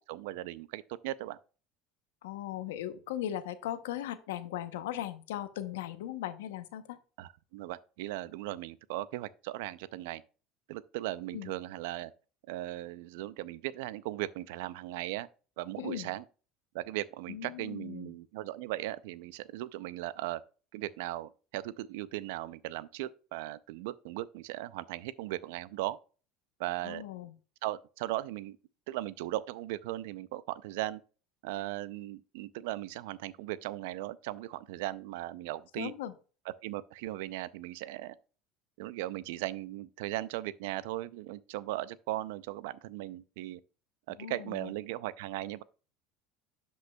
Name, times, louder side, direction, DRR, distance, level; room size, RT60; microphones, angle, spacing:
voice 1, 0.1-1.4 7.2-10.2 10.7-12.1 12.5-15.3 15.6-16.2 16.7-20.4 20.7-26.0 26.6-27.0 27.6-28.6 28.9-31.0 31.4-35.9 36.6-38.2 38.8-43.6 44.1-45.6, right 16 dB, 80° right, 0.4 m, -38 dB
voice 2, 2.2-7.0 11.3-11.5 15.8-16.1 17.3-18.1 26.8-27.3 35.8-36.1 44.2-44.7, left 12 dB, 85° left, 0.8 m, -38 dB
11.5 x 5.2 x 2.3 m
supercardioid pair, 90°, 0 cm